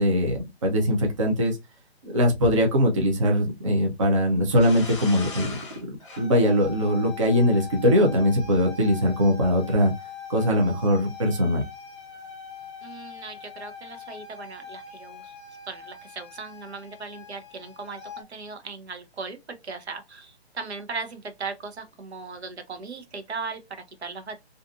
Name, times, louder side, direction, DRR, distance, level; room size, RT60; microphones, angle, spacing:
voice 1, 0.0-1.6 2.0-5.6 6.2-9.9 10.3-11.6, equal, 30° right, 0.5 m, -21 dB
sound 1, 4.6-18.2, left 4 dB, 30° left, 0.7 m, -42 dB
voice 2, 12.8-15.3 15.7-19.4 19.6-24.4, right 4 dB, 80° right, 0.8 m, -38 dB
2.5 x 2.5 x 2.4 m
hypercardioid pair, 160°, 32 cm